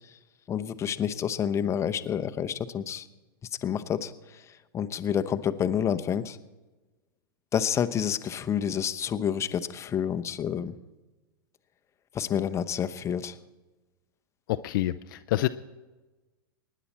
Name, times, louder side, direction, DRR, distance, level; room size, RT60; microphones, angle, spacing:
voice 1, 0.5-3.1 3.6-4.1 4.7-6.4 7.5-10.8 12.1-13.3, left 8 dB, 25° left, 9 dB, 0.8 m, -28 dB
voice 2, 14.5-15.5, left 15 dB, 60° left, 10 dB, 0.5 m, -27 dB
24.0 x 10.5 x 4.2 m, 1.2 s
hypercardioid pair, 105°, 12 cm